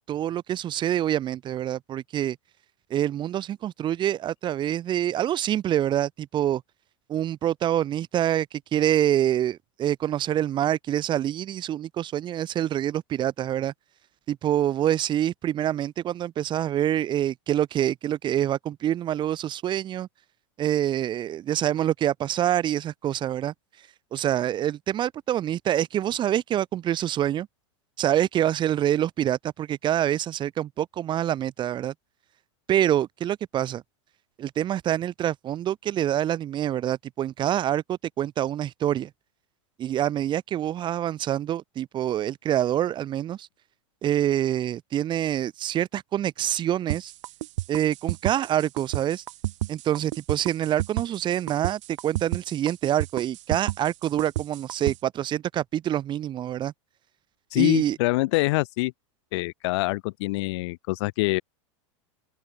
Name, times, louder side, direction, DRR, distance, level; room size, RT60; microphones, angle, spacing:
voice 1, 0.1-2.4 2.9-6.6 7.1-13.7 14.3-20.1 20.6-23.5 24.1-27.5 28.0-31.9 32.7-33.8 34.4-39.1 39.8-43.5 44.0-47.1 47.7-49.2 49.7-56.7 57.5-58.0, right 11 dB, 30° right, 0.9 m, -26 dB
sound 1, 46.9-55.0, right 17 dB, 70° right, 1.5 m, -30 dB
voice 2, 57.5-58.9 59.3-61.4, left 22 dB, 65° left, 0.7 m, -25 dB
open air
hypercardioid pair, 120°, 16 cm